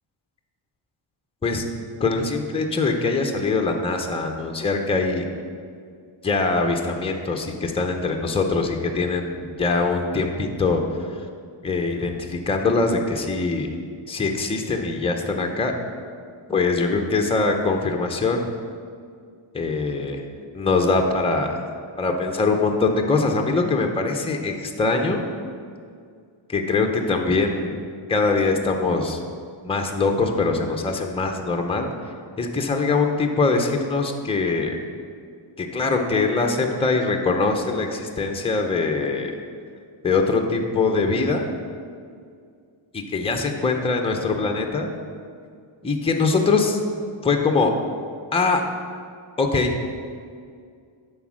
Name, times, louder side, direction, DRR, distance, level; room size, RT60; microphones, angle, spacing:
voice 1, 2.0-5.2 6.2-10.8 11.6-13.7 14.1-15.7 16.5-18.5 19.5-20.2 20.5-21.6 22.0-25.2 26.5-27.8 28.1-29.2 29.6-31.9 32.4-34.7 35.6-39.3 40.0-41.5 43.1-44.9 45.8-46.8 47.2-47.7 48.3-48.6 49.4-49.7, left 3 dB, 10° left, 3 dB, 0.6 m, -22 dB
11.0 x 4.3 x 6.1 m, 2.2 s
wide cardioid pair, 160°, 50 cm